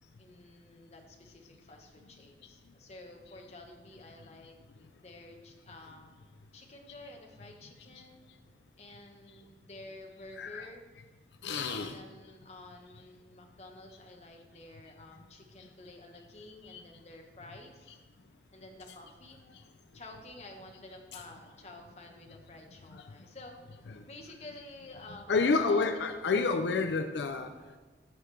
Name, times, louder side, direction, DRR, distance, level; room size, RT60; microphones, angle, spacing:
voice 1, 0.2-4.6 4.9-6.1 6.5-8.2 8.8-10.9 11.8-18.0 18.5-19.4 19.9-23.6 24.1-25.9, left 2 dB, 35° left, 2 dB, 1.0 m, -50 dB
voice 2, 10.4-10.7 11.4-12.0 16.6-16.8 21.1-21.2 22.9-23.0 23.9-24.0 24.9-27.5, left 4 dB, 80° left, 7 dB, 0.4 m, -30 dB
15.0 x 5.1 x 3.3 m, 1.3 s
head